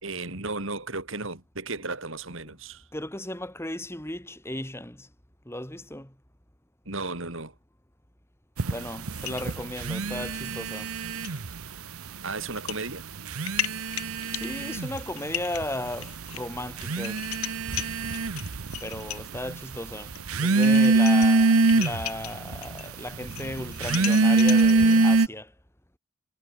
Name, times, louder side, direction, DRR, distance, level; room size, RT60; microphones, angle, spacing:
voice 1, 0.0-2.8 6.8-7.5 12.2-13.1, right 3 dB, 65° right, 3.3 m, -34 dB
voice 2, 2.9-5.1 5.4-6.1 8.7-10.9 14.3-17.3 18.8-25.5, left 1 dB, 10° left, 3.0 m, -35 dB
sound 1, 8.6-11.7 11.9-12.7 13.2-25.3, right 3 dB, 90° right, 1.0 m, -24 dB
sound 2, 9.1-10.4 10.7-10.9 11.2-11.4 12.4-12.8 13.2-19.4 20.2-20.3 20.5-22.9 23.2-25.1, left 13 dB, 85° left, 1.1 m, -37 dB
head